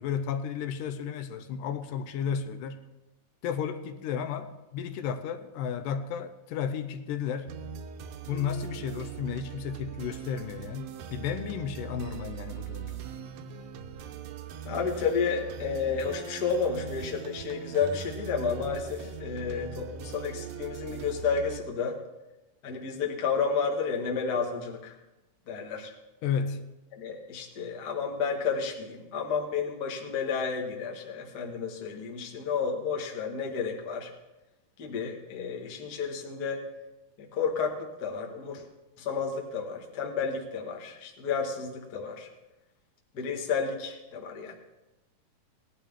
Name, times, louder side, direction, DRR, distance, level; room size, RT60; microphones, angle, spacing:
voice 1, 0.0-2.8 3.4-7.5 8.3-13.0 26.2-26.7, left 7 dB, 80° left, 2.2 m, -33 dB
sound 1, 7.5-21.6, right 7 dB, 85° right, 2.5 m, -40 dB
voice 2, 14.6-22.0 22.6-24.9 25.5-25.9 27.0-34.1 34.8-36.6 37.2-38.6 39.0-42.3 43.1-44.5, left 5 dB, 50° left, 1.2 m, -31 dB
18.5 x 11.0 x 3.6 m
omnidirectional pair, 4.1 m